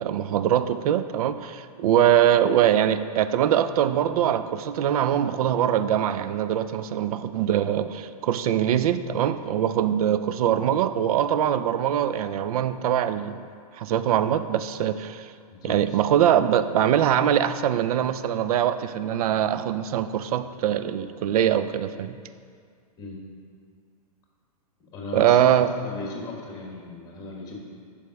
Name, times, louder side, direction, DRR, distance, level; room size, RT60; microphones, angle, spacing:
voice 1, 0.0-13.4 13.7-15.3 15.6-22.2 25.1-25.7, right 10 dB, 70° right, 12 dB, 0.4 m, -23 dB
voice 2, 15.5-16.0 23.0-23.2 24.8-27.6, left 2 dB, 20° left, -1 dB, 1.2 m, -37 dB
5.2 x 4.9 x 5.8 m, 2.2 s
hypercardioid pair, 145°, 19 cm